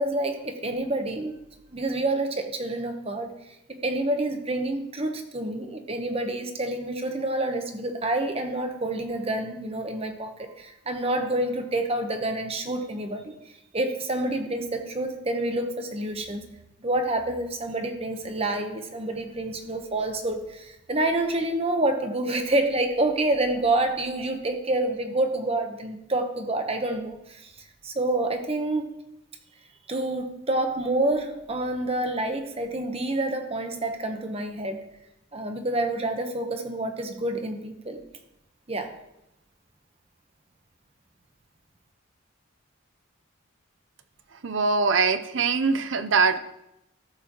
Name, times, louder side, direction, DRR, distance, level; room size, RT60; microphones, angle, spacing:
voice 1, 0.0-1.3 1.7-3.3 3.7-13.3 13.7-16.5 16.8-27.5 27.8-28.9 29.9-34.8 35.3-38.0 38.7-38.9, right 2 dB, 30° right, 6 dB, 1.0 m, -28 dB
voice 2, 44.4-46.4, right 4 dB, 65° right, 10 dB, 0.6 m, -22 dB
13.5 x 7.6 x 3.0 m, 0.86 s
head